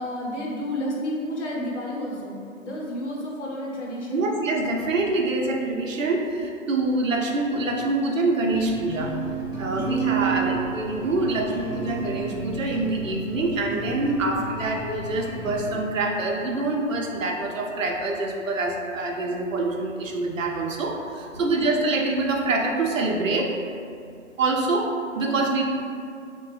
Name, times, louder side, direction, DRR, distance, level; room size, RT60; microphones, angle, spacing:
voice 1, 0.0-4.3 10.0-10.5 21.3-21.6, left 1 dB, 60° left, -3 dB, 0.7 m, -31 dB
voice 2, 4.1-9.1 9.6-23.5 24.4-25.6, right 2 dB, 70° right, 0 dB, 0.5 m, -25 dB
sound 1, 8.5-15.8, right 4 dB, ahead, 0.6 m, -32 dB
2.8 x 2.1 x 3.2 m, 2.4 s
figure-of-eight pair, 145°, 41 cm